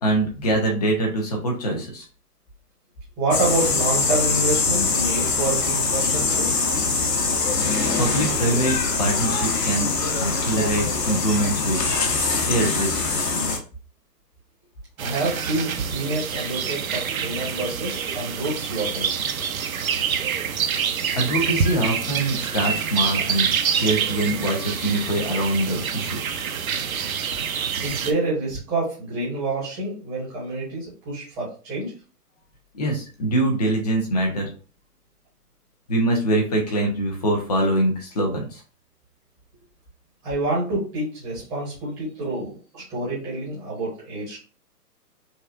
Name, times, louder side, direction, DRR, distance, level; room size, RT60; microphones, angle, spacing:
voice 1, 0.0-2.0 8.0-9.9 10.2-11.8 12.4-13.0 21.1-23.5 23.8-26.2 32.7-34.5 35.9-38.6, right 1 dB, 25° left, 1 dB, 0.9 m, -23 dB
voice 2, 3.2-6.5 15.0-19.5 27.8-31.9 40.2-44.4, right 2 dB, 5° right, -7 dB, 0.9 m, -27 dB
sound 1, 3.3-13.6, left 4 dB, 75° left, 1.2 m, -23 dB
sound 2, 15.0-28.1, right 7 dB, 60° right, 0.6 m, -26 dB
5.4 x 2.3 x 2.6 m, 0.37 s
hypercardioid pair, 160°, 48 cm